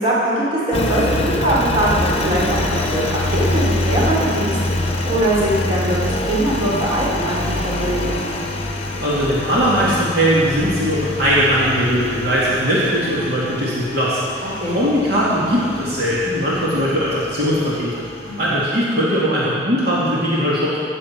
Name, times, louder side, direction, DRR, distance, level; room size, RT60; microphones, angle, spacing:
voice 1, 0.0-4.5 5.0-8.1 14.6-14.8 18.2-18.4, right 1 dB, 30° right, -6 dB, 3.5 m, -21 dB
Engine, 0.7-18.7, left 1 dB, 35° left, 1.0 m, -25 dB
voice 2, 9.0-18.1 18.4-20.8, equal, 60° right, -8 dB, 2.4 m, -19 dB
16.5 x 7.5 x 6.0 m, 2.5 s
head